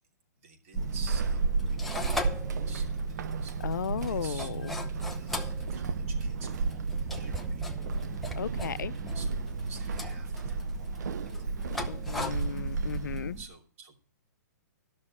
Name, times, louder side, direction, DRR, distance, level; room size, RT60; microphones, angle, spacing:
voice 1, 0.4-7.7 9.1-11.5 12.2-12.4 12.9-14.0, right 5 dB, 50° right, 2.9 m, -51 dB
sound 1, 0.7-13.5, left 2 dB, ahead, 0.7 m, -40 dB
Walk footsteps / Squeak, 0.8-13.4, right 4 dB, 70° right, 0.8 m, -33 dB
voice 2, 3.6-4.7 8.4-8.9 11.9-13.4, left 8 dB, 80° left, 0.6 m, -35 dB
13.0 x 6.3 x 7.3 m
hypercardioid pair, 155°, 10 cm